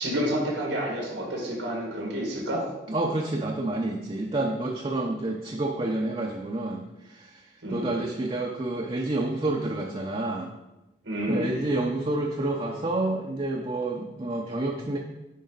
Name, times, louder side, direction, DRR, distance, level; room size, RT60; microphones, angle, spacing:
voice 1, 0.0-2.7 7.6-7.9 11.0-11.5, equal, 90° right, -2 dB, 2.0 m, -29 dB
voice 2, 2.9-7.4 7.7-10.5 11.3-15.0, right 2 dB, 30° right, 0 dB, 0.6 m, -29 dB
9.2 x 5.0 x 3.9 m, 1.0 s
head